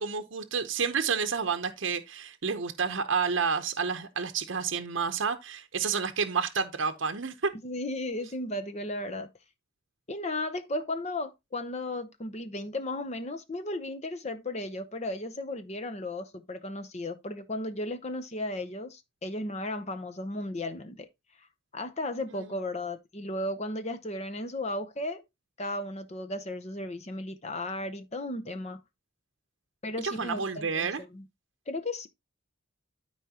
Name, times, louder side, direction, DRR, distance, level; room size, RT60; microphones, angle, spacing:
voice 1, 0.0-7.5 22.4-22.5 30.0-31.0, right 5 dB, 65° right, 0.8 m, -30 dB
voice 2, 7.6-9.3 10.1-21.1 21.7-25.2 25.6-28.8 29.8-31.2 31.7-32.1, left 1 dB, 35° left, 0.8 m, -35 dB
12.5 x 4.9 x 2.9 m
head